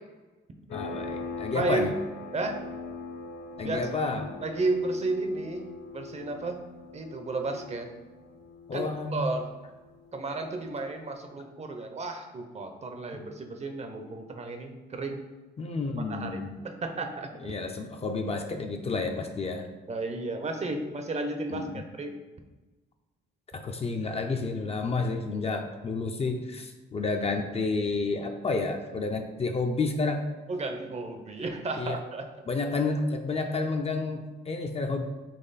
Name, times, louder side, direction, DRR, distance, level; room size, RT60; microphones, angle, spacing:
sound 1, 0.7-11.0, left 3 dB, 70° left, 1.1 m, -42 dB
voice 1, 0.7-1.9 3.6-4.3 8.7-9.3 15.6-16.6 17.4-19.7 21.5-21.8 23.5-30.2 31.8-32.0 32.5-35.0, left 3 dB, 30° left, 4 dB, 0.5 m, -30 dB
voice 2, 1.5-1.9 2.3-2.6 3.6-3.8 4.4-6.6 6.9-7.9 8.7-9.5 10.1-15.2 16.1-17.3 19.9-22.1 30.5-32.5, right 3 dB, 35° right, 5 dB, 0.6 m, -33 dB
4.2 x 2.9 x 4.0 m, 1.2 s
cardioid pair, 90°, 20 cm